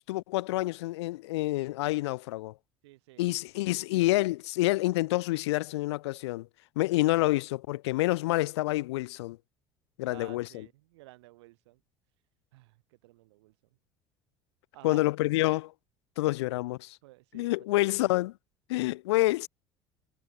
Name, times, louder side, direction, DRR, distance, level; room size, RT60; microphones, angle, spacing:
voice 1, 0.1-2.5 3.2-6.5 6.8-9.4 10.0-10.7 14.8-15.7 16.2-17.0 17.3-18.3 18.7-19.5, left 19 dB, 70° left, 0.5 m, -28 dB
voice 2, 2.8-3.3 10.1-11.8 12.5-13.5 14.7-15.0 17.0-18.1, right 20 dB, 70° right, 7.3 m, -53 dB
figure-of-eight pair, 60°, 15 cm